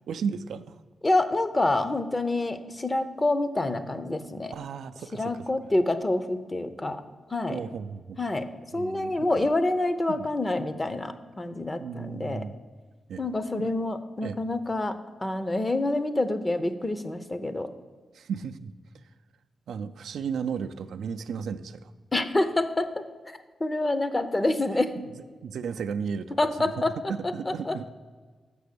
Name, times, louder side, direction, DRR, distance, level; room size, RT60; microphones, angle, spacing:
voice 1, 0.1-0.8 4.5-5.5 7.5-8.2 8.7-9.5 10.1-10.3 11.8-12.6 13.1-13.2 13.6-13.7 14.2-14.4 18.1-18.7 19.7-21.9 25.4-26.8 27.1-27.8, right 6 dB, 85° right, 9 dB, 0.4 m, -34 dB
voice 2, 1.0-4.5 5.1-7.0 7.3-7.6 8.2-12.5 13.2-17.7 22.1-23.0 23.6-24.9 26.3-27.0 27.2-27.8, left 2 dB, 25° left, 10 dB, 0.6 m, -27 dB
6.8 x 6.1 x 6.6 m, 1.5 s
cardioid pair, 85°, 0 cm